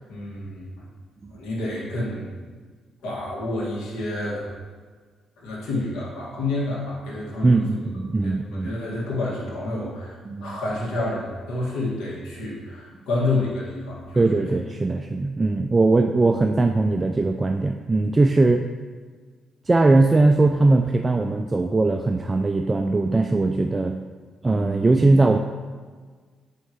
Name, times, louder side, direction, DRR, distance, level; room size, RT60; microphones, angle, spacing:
voice 1, 0.1-0.8 1.3-2.3 3.0-4.5 5.4-7.6 8.2-14.2, left 2 dB, 90° left, -6 dB, 2.0 m, -29 dB
voice 2, 7.4-8.7 10.2-10.6 14.2-18.6 19.7-24.0 24.4-25.4, right 2 dB, 25° right, 4 dB, 0.3 m, -20 dB
7.2 x 5.6 x 3.2 m, 1.5 s
cardioid pair, 90°, 0 cm